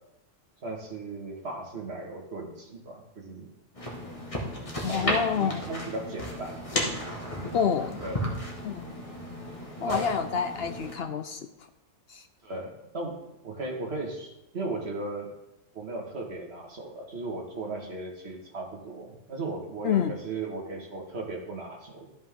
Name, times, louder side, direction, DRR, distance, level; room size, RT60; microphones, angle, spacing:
voice 1, 0.6-3.5 4.9-6.7 8.0-8.2 9.8-10.1 12.4-15.3 15.7-22.1, right 3 dB, 50° right, 0 dB, 1.9 m, -36 dB
sound 1, 3.7-10.9, equal, 25° left, 1.5 m, -34 dB
voice 2, 4.8-5.6 7.5-8.0 8.6-8.9 9.8-11.5 12.1-12.2 19.8-20.2, left 7 dB, 65° left, 9 dB, 0.6 m, -28 dB
13.0 x 5.2 x 3.6 m, 0.87 s
omnidirectional pair, 1.4 m